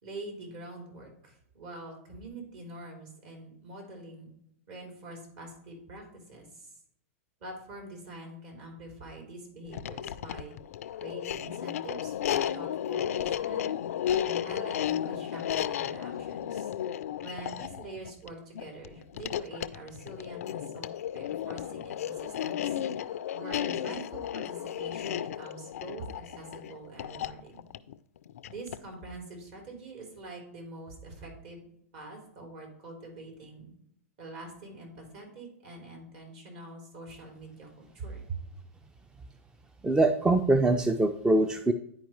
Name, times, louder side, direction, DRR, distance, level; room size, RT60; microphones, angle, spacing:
voice 1, 0.0-4.3 4.7-6.7 7.4-10.6 11.0-13.7 14.2-16.7 17.2-20.9 21.1-27.6 28.5-31.6 31.9-33.7 34.2-38.4, right 2 dB, 55° right, 1 dB, 3.2 m, -45 dB
sound 1, 9.7-28.9, left 10 dB, 80° left, 0.4 m, -34 dB
voice 2, 39.8-41.7, right 2 dB, 10° right, 9 dB, 0.4 m, -23 dB
10.5 x 4.7 x 3.1 m, 0.73 s
hypercardioid pair, 125°, 8 cm